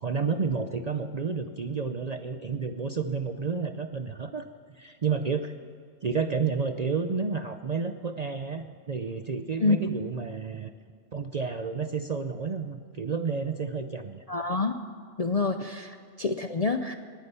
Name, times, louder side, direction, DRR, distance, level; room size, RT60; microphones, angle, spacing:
voice 1, 0.0-4.5 4.7-5.5 6.0-10.7 11.1-14.2, right 5 dB, 45° right, 8 dB, 0.5 m, -30 dB
voice 2, 14.3-14.8 15.2-16.9, left 3 dB, 45° left, 7 dB, 0.5 m, -27 dB
19.5 x 9.8 x 6.8 m, 2.2 s
omnidirectional pair, 1.3 m